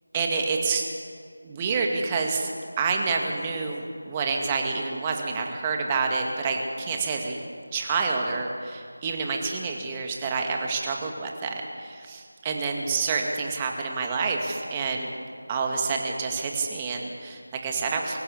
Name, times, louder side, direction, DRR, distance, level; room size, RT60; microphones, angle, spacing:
voice 1, 0.1-0.9 1.4-2.5 2.8-7.4 7.7-15.1 15.5-18.2, right 4 dB, 15° right, 2 dB, 1.9 m, -28 dB
24.0 x 13.5 x 8.4 m, 2.1 s
figure-of-eight pair, 170°, 0 cm